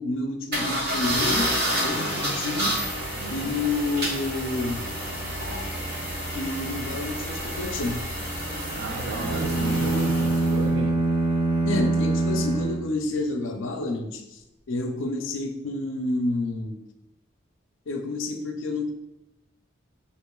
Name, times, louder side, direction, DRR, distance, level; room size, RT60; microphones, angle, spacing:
voice 1, 0.0-1.5 1.8-2.8 3.3-4.8 6.3-8.0 11.6-14.4 14.7-16.8 17.9-18.9, left 2 dB, 65° left, 5 dB, 0.5 m, -29 dB
sound 1, 0.5-10.7, equal, 45° right, 1.1 m, -29 dB
voice 2, 3.1-3.5 8.7-10.9, right 3 dB, 75° right, 3 dB, 0.6 m, -33 dB
sound 2, 9.1-13.5, right 2 dB, 25° right, 0.5 m, -25 dB
6.7 x 2.4 x 2.3 m, 0.89 s
head